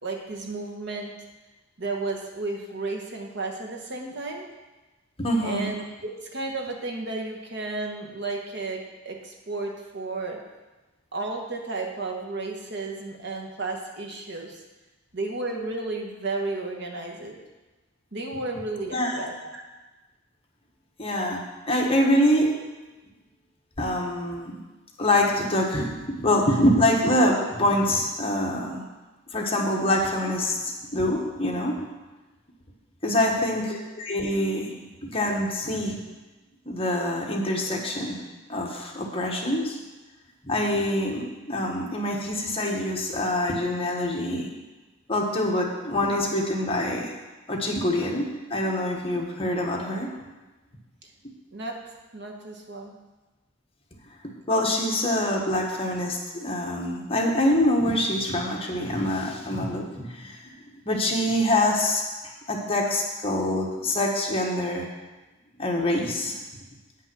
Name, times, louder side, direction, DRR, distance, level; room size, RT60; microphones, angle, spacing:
voice 1, 0.0-1.1 1.8-4.5 5.4-10.4 11.1-14.6 15.1-17.4 18.1-19.6 33.0-33.4 51.0-51.1 51.5-51.8 52.1-53.0, right 3 dB, 60° right, 1 dB, 1.3 m, -33 dB
voice 2, 5.2-5.7 18.9-19.3 21.0-21.4 21.7-22.5 23.8-24.6 25.0-28.8 29.3-31.8 33.0-34.7 35.0-36.0 36.6-38.2 38.5-39.8 40.4-44.5 45.1-47.1 47.5-50.1 54.5-60.5 60.8-62.0 62.5-64.9 65.6-66.3, left 1 dB, 30° left, 0 dB, 1.3 m, -25 dB
9.1 x 5.8 x 6.2 m, 1.2 s
head